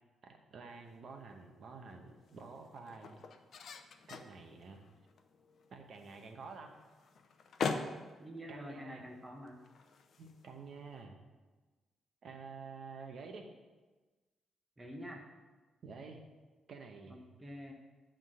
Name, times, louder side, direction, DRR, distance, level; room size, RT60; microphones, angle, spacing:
voice 1, 0.2-3.2 4.1-4.8 5.7-6.7 8.5-9.1 10.2-11.2 12.2-13.5 15.8-16.2 16.7-17.3, right 4 dB, 55° right, 4 dB, 1.1 m, -49 dB
sound 1, 0.7-11.0, left 5 dB, 60° left, 0.6 m, -45 dB
voice 2, 8.2-9.6 14.8-15.2 17.1-17.7, equal, 15° right, 1 dB, 1.0 m, -47 dB
8.9 x 3.8 x 6.4 m, 1.3 s
cardioid pair, 105°, 0 cm